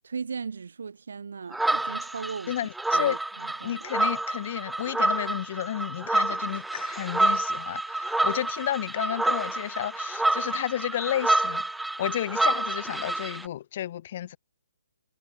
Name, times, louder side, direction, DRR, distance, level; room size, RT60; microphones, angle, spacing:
voice 1, 0.0-2.5 2.9-3.8, right 5 dB, 65° right, 1.5 m, -37 dB
sound 1, 1.5-13.5, right 2 dB, 5° right, 0.8 m, -28 dB
voice 2, 2.5-3.2 3.6-11.6 12.0-14.4, left 11 dB, 45° left, 0.7 m, -32 dB
figure-of-eight pair, 130°, 0 cm